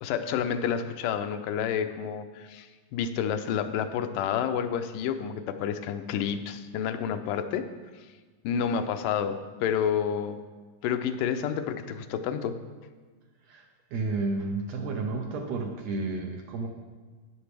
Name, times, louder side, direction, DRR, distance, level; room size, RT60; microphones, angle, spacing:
voice 1, 0.0-7.7 8.4-10.4 10.8-12.6, left 8 dB, 85° left, 9 dB, 2.2 m, -29 dB
voice 2, 13.5-16.7, right 3 dB, 75° right, 2 dB, 1.7 m, -31 dB
11.0 x 9.8 x 3.4 m, 1.4 s
omnidirectional pair, 3.7 m